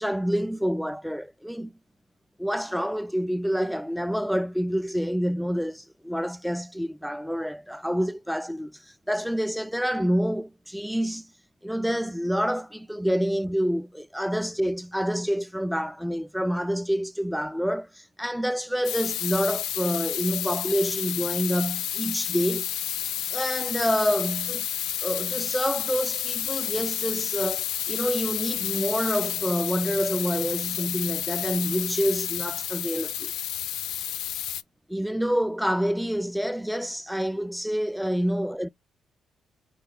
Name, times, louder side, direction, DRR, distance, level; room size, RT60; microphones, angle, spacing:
voice 1, 0.0-1.7 2.4-11.3 11.6-22.7 23.3-24.7 25.0-33.3 34.9-38.7, equal, ahead, 0.3 m, -27 dB
sound 1, 18.8-34.6, left 12 dB, 80° left, 0.3 m, -30 dB
4.9 x 2.3 x 3.4 m
supercardioid pair, 65°, 0 cm